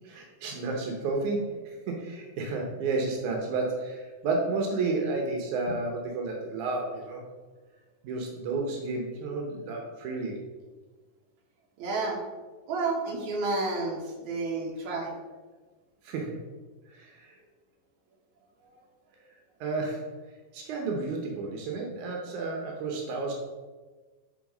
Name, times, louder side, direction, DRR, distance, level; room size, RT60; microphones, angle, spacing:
voice 1, 0.0-7.2 8.0-10.4 16.0-16.4 16.9-17.4 19.6-20.1 20.5-23.3, right 3 dB, 85° right, 0 dB, 1.7 m, -31 dB
voice 2, 11.8-12.2 12.7-15.1, right 3 dB, 65° right, -1 dB, 1.9 m, -30 dB
9.8 x 3.6 x 5.3 m, 1.3 s
omnidirectional pair, 4.9 m